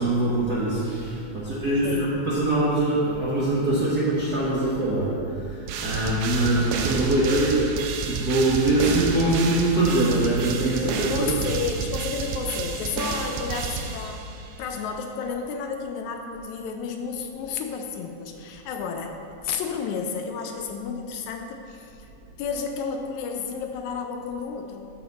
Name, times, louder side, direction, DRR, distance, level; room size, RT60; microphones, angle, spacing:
voice 1, 0.0-7.7 8.1-11.4, right 2 dB, 55° right, -9 dB, 1.1 m, -23 dB
sound 1, 5.7-14.5, right 5 dB, 75° right, 1.8 m, -31 dB
voice 2, 6.5-6.9 11.1-14.3 14.6-19.2 19.4-22.1 22.4-24.9, left 5 dB, 80° left, 4 dB, 1.9 m, -32 dB
13.0 x 5.0 x 4.1 m, 2.6 s
omnidirectional pair, 3.5 m